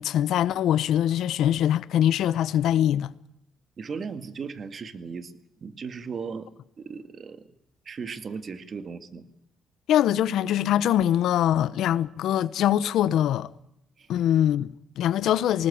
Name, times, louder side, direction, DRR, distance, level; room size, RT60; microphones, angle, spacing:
voice 1, 0.0-3.1 9.9-13.5 14.1-15.7, left 11 dB, 80° left, 0.8 m, -23 dB
voice 2, 3.8-5.3 5.6-6.5 6.8-7.4 7.9-9.3 14.0-14.1, right 5 dB, 45° right, 2.0 m, -36 dB
20.5 x 19.5 x 8.7 m
cardioid pair, 90°, 0 cm